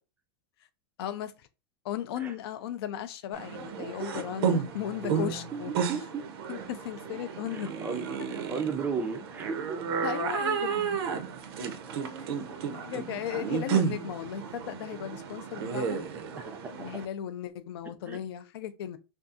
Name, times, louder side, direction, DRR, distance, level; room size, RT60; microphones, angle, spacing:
voice 1, 1.0-1.3 1.8-5.7 6.5-7.7 10.0-11.0 12.7-16.0 16.8-19.0, left 10 dB, 70° left, 0.4 m, -36 dB
sound 1, 3.3-17.1, right 7 dB, 75° right, 0.5 m, -33 dB
voice 2, 3.8-4.2 4.5-4.6 5.0-6.3 7.5-9.8 16.5-16.7 18.1-18.2, right 5 dB, 15° right, 0.3 m, -35 dB
2.6 x 2.3 x 2.4 m
supercardioid pair, 155°, 13 cm